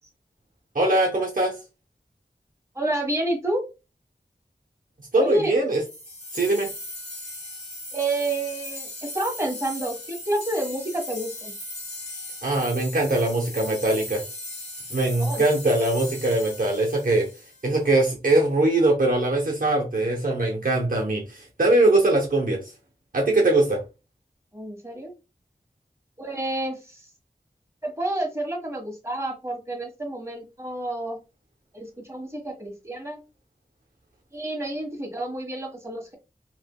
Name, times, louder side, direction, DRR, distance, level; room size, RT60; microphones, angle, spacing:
voice 1, 0.7-1.5 5.1-5.8 6.3-6.7 12.4-14.2 14.9-17.3 17.6-22.6 23.1-23.8, right 2 dB, 60° right, -1 dB, 0.8 m, -21 dB
voice 2, 2.7-3.6 5.1-5.5 7.9-11.5 15.2-15.4 24.5-25.1 26.2-27.1 27.8-31.2 31.7-33.2 34.3-36.2, right 1 dB, 20° right, -1 dB, 1.5 m, -29 dB
sound 1, 5.8-17.9, left 1 dB, 45° left, 1.5 m, -38 dB
3.2 x 3.0 x 2.2 m, 0.29 s
wide cardioid pair, 50°, 16 cm